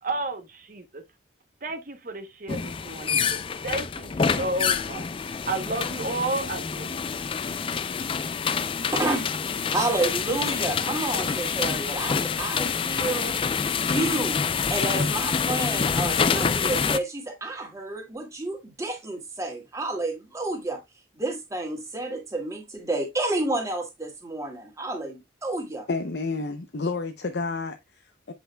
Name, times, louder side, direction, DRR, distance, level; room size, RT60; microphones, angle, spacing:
voice 1, 0.0-1.0 1.6-7.2, right 2 dB, 45° right, 0.9 m, -32 dB
sound 1, 2.5-17.0, left 6 dB, 30° left, 0.3 m, -27 dB
voice 2, 8.9-13.4 13.7-20.8 21.1-25.9, right 2 dB, 15° right, 2.1 m, -30 dB
voice 3, 25.9-28.3, left 3 dB, 60° left, 0.6 m, -30 dB
7.9 x 6.5 x 2.2 m
head